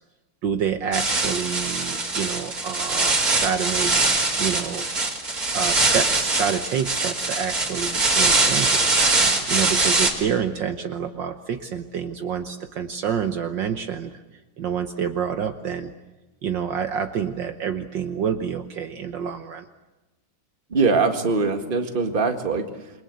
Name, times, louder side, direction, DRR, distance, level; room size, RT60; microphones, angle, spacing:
voice 1, 0.4-3.9 4.4-4.9 5.5-9.0 9.5-14.2 14.6-15.9 16.4-19.7, right 7 dB, 60° right, 7 dB, 1.6 m, -28 dB
sound 1, 0.9-10.1, right 3 dB, 45° right, 3.9 m, -22 dB
voice 2, 20.7-23.0, right 4 dB, 25° right, 6 dB, 1.8 m, -22 dB
28.0 x 23.0 x 8.2 m, 1.1 s
omnidirectional pair, 2.3 m